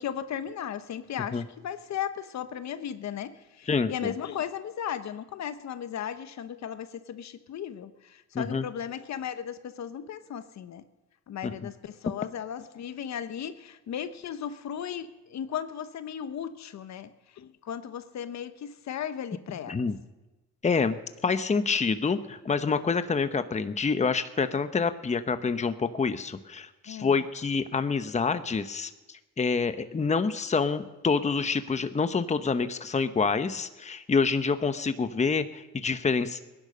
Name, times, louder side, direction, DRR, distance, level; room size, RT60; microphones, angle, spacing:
voice 1, 0.0-10.8 11.3-17.1 17.4-19.9 26.9-27.2, left 9 dB, 65° left, 11 dB, 1.0 m, -36 dB
voice 2, 3.7-4.1 8.3-8.7 11.4-11.5 19.7-20.0 20.6-21.0 21.2-28.9 29.4-36.4, left 5 dB, 25° left, 10 dB, 0.9 m, -27 dB
19.0 x 11.0 x 6.6 m, 1.1 s
cardioid pair, 90°, 30 cm